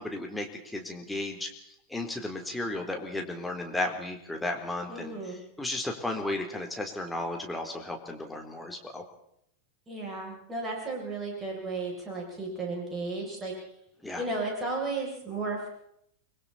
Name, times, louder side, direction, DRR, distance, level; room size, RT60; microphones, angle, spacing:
voice 1, 0.0-9.0 14.0-14.2, left 2 dB, 5° left, 2 dB, 3.8 m, -34 dB
voice 2, 4.9-5.4 9.9-13.5 14.2-15.7, right 3 dB, 15° right, -2 dB, 7.8 m, -34 dB
29.5 x 22.0 x 4.4 m, 0.72 s
figure-of-eight pair, 90°, 0 cm